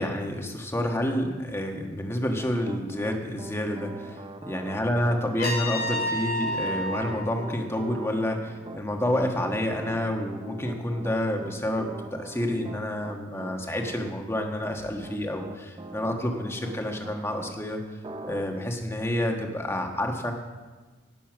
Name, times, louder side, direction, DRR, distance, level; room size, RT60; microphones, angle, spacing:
voice 1, 0.0-17.8 18.2-20.3, left 1 dB, 15° left, 2 dB, 1.4 m, -29 dB
Piano, 2.4-17.6 18.0-18.4, right 2 dB, 25° right, 0.6 m, -42 dB
Trumpet, 5.4-8.3, equal, 50° left, 2.2 m, -31 dB
18.0 x 6.8 x 6.2 m, 1.3 s
head